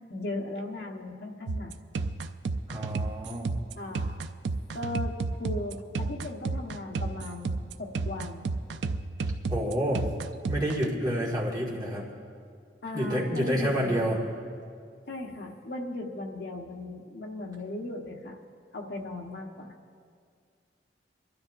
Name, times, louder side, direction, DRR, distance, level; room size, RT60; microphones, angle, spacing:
voice 1, 0.0-1.7 3.8-4.2 4.7-8.5 12.8-14.1 15.1-18.4 18.7-19.7, left 2 dB, 65° left, 1 dB, 1.2 m, -37 dB
sound 1, 1.5-10.9, right 3 dB, 85° right, 0.4 m, -32 dB
voice 2, 2.7-3.5 9.5-10.1 10.5-12.1 12.9-14.2, equal, 20° right, -4 dB, 1.9 m, -28 dB
25.0 x 12.5 x 2.6 m, 2.2 s
head